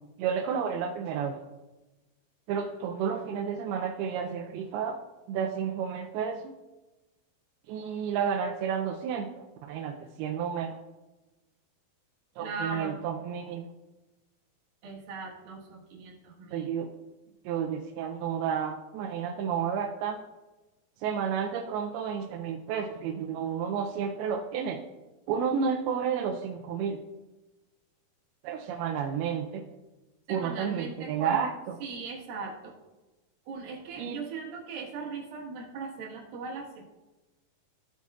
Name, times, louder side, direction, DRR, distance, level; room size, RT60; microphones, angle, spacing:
voice 1, 0.2-1.4 2.5-5.0 5.3-6.5 7.7-10.8 12.4-13.7 16.5-16.9 17.5-20.2 21.0-24.8 25.3-27.0 28.4-29.6 30.3-31.5 34.0-34.2, right 7 dB, 85° right, 2 dB, 2.6 m, -31 dB
voice 2, 12.4-13.0 14.8-16.7 30.3-31.5 31.8-32.7 33.5-36.9, right 4 dB, 70° right, -1 dB, 3.2 m, -39 dB
15.0 x 8.3 x 2.4 m, 1.1 s
omnidirectional pair, 4.4 m